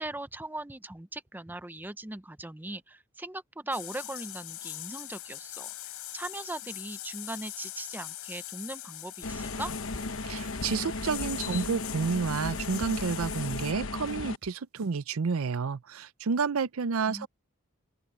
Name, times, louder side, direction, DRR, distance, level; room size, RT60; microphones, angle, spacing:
voice 1, 0.0-9.7 17.1-17.3, right 2 dB, 10° right, 0.6 m, -39 dB
sound 1, 3.7-13.7, left 14 dB, 85° left, 3.9 m, -42 dB
sound 2, 9.2-14.4, left 3 dB, 65° left, 1.1 m, -35 dB
sound 3, 9.6-15.0, right 2 dB, 55° right, 3.8 m, -56 dB
voice 2, 10.2-17.3, right 5 dB, 70° right, 0.6 m, -30 dB
open air
head